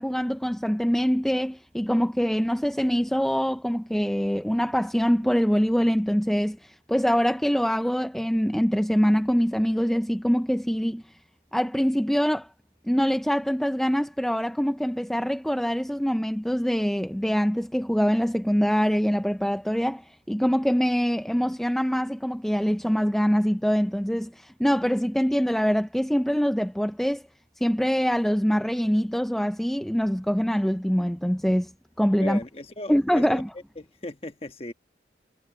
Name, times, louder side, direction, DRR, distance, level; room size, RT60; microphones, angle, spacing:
voice 1, 0.0-11.0 11.5-12.5 12.9-27.2 27.6-31.7 32.0-32.4 32.9-33.5, equal, ahead, 0.4 m, -24 dB
voice 2, 32.2-33.4 34.0-34.7, left 2 dB, 30° left, 1.3 m, -36 dB
head